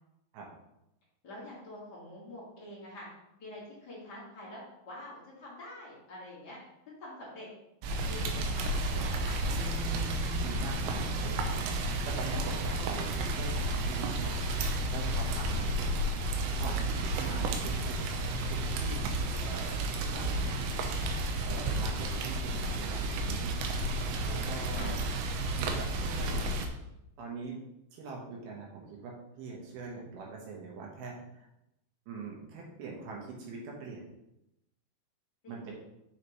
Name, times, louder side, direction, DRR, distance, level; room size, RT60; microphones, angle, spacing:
voice 1, 1.2-3.1 3.4-4.6 4.8-6.6 6.8-7.5 8.0-9.4 12.7-13.0 17.1-17.4 23.5-23.7 24.7-25.0 35.4-35.7, left 1 dB, 75° left, -6 dB, 0.9 m, -46 dB
Rain, 7.8-26.7, right 1 dB, 90° right, 2.9 m, -32 dB
Bass guitar, 9.6-15.8, right 5 dB, 30° right, 2.3 m, -48 dB
voice 2, 9.6-10.0 10.4-13.1 13.4-14.4 14.9-16.1 16.6-18.2 18.5-19.7 20.1-20.6 21.4-23.5 24.2-25.0 25.6-26.6 27.2-27.6 27.9-31.5 32.1-34.0 35.5-35.7, right 4 dB, 70° right, -2 dB, 2.8 m, -43 dB
6.7 x 6.5 x 3.1 m, 0.86 s
omnidirectional pair, 5.1 m